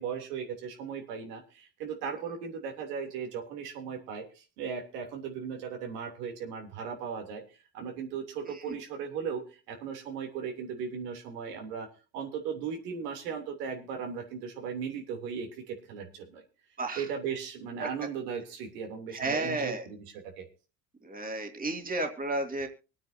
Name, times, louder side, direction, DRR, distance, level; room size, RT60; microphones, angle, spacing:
voice 1, 0.0-7.4 7.7-11.9 12.1-16.4 16.9-20.0 20.4-20.5, right 6 dB, 80° right, 2 dB, 3.2 m, -37 dB
voice 2, 8.4-8.8 16.8-17.0 17.8-17.9 19.1-19.9 21.0-22.7, right 2 dB, 20° right, 4 dB, 2.5 m, -32 dB
24.0 x 9.1 x 2.7 m, 0.33 s
hypercardioid pair, 80°, 46 cm